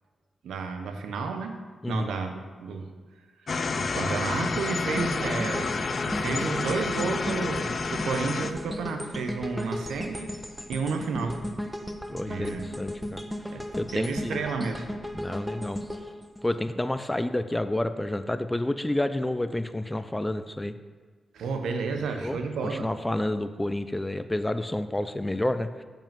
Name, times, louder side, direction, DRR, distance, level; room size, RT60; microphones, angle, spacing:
voice 1, 0.4-1.6 1.9-2.9 3.7-10.3 10.7-11.4 12.3-12.7 13.5-14.9 21.3-22.9, right 4 dB, 85° right, 6 dB, 0.9 m, -31 dB
sound 1, 3.5-8.5, left 4 dB, 55° left, 0.6 m, -29 dB
sound 2, 5.0-17.1 17.6-17.7, equal, ahead, 1.1 m, -36 dB
voice 2, 12.1-13.2 13.7-14.4 15.1-15.8 16.4-20.8 21.9-25.8, left 1 dB, 15° left, 11 dB, 0.6 m, -29 dB
7.4 x 5.4 x 7.4 m, 1.5 s
cardioid pair, 55°, 0 cm